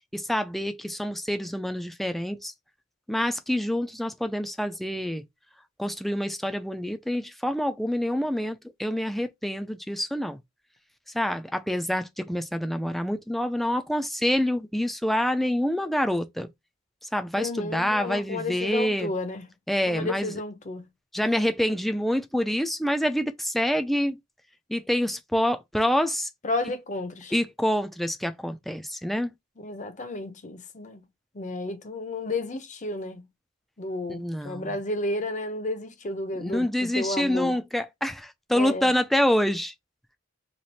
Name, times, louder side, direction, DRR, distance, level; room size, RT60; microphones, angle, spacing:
voice 1, 0.1-2.5 3.1-5.2 5.8-10.4 11.1-16.5 17.1-19.1 19.7-20.3 21.1-24.2 24.7-26.3 27.3-29.3 34.1-34.8 36.4-39.7, equal, ahead, 0.3 m, -27 dB
voice 2, 17.4-19.5 19.9-20.9 26.4-27.3 29.6-31.0 31.3-33.3 33.8-37.5 38.5-38.9, left 2 dB, 40° left, 0.7 m, -32 dB
3.1 x 2.5 x 4.1 m
head